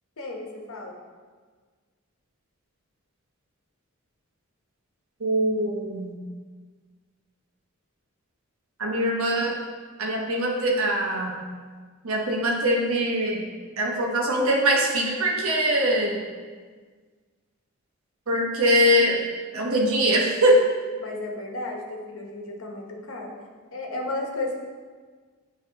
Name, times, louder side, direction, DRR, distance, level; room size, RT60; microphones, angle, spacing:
voice 1, 0.2-1.0 21.0-23.3 23.7-24.6, left 2 dB, 70° left, 0 dB, 1.0 m, -33 dB
voice 2, 5.2-6.2 8.8-9.6 10.0-11.4 12.0-13.4 13.8-16.2 18.3-19.2 19.5-20.6, equal, 85° right, -1 dB, 1.2 m, -22 dB
9.5 x 3.3 x 4.0 m, 1.5 s
head